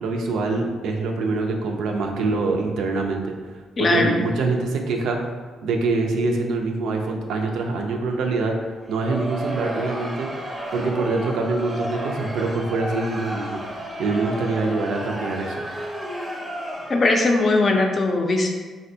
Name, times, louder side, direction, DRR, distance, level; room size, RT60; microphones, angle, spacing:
voice 1, 0.0-5.3 5.6-8.6 8.9-10.3 10.7-15.5, right 3 dB, 80° right, 2 dB, 0.4 m, -25 dB
voice 2, 3.8-4.2 16.9-18.5, left 2 dB, 40° left, 2 dB, 0.4 m, -19 dB
Crowd, 8.8-17.3, equal, 10° right, 0.6 m, -32 dB
3.5 x 2.1 x 2.6 m, 1.4 s
cardioid pair, 90°, 0 cm